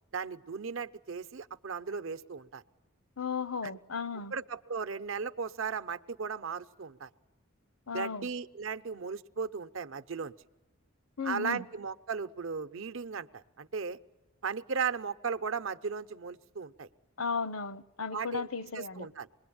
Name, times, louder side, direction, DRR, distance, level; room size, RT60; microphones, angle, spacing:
voice 1, 0.1-2.6 3.6-3.7 4.3-7.1 7.9-10.3 11.2-14.0 14.4-16.9 18.1-18.5 18.7-19.3, right 5 dB, 65° right, 0.8 m, -36 dB
voice 2, 3.2-4.3 7.9-8.3 11.2-11.6 17.2-19.1, left 5 dB, 75° left, 0.8 m, -35 dB
27.0 x 21.5 x 8.7 m
head